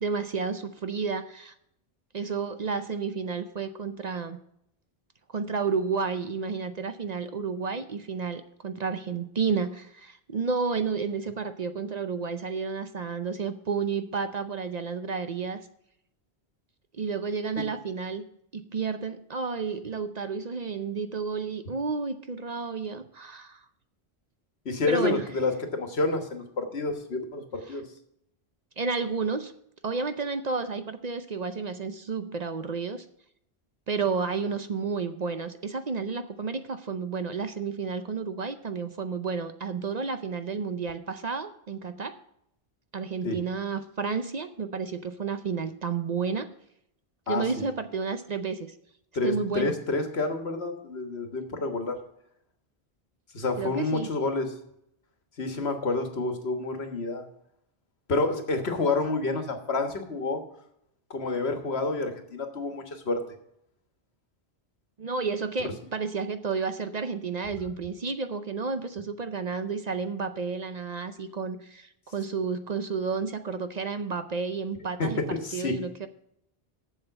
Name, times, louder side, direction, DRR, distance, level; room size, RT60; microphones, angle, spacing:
voice 1, 0.0-1.5 2.1-4.4 5.3-15.6 16.9-18.3 18.5-23.6 24.9-25.3 27.7-27.8 28.8-29.5 29.8-33.0 33.9-42.2 42.9-46.5 47.3-48.7 49.2-49.7 53.6-54.1 65.0-75.2 75.5-76.1, right 5 dB, 45° right, 9 dB, 0.7 m, -31 dB
voice 2, 24.7-27.8 43.2-43.4 47.3-47.7 49.1-52.0 53.3-54.5 55.4-57.3 58.1-60.4 61.1-63.2 75.0-75.8, left 3 dB, 80° left, 6 dB, 1.7 m, -29 dB
7.4 x 7.2 x 7.8 m, 0.76 s
omnidirectional pair, 1.1 m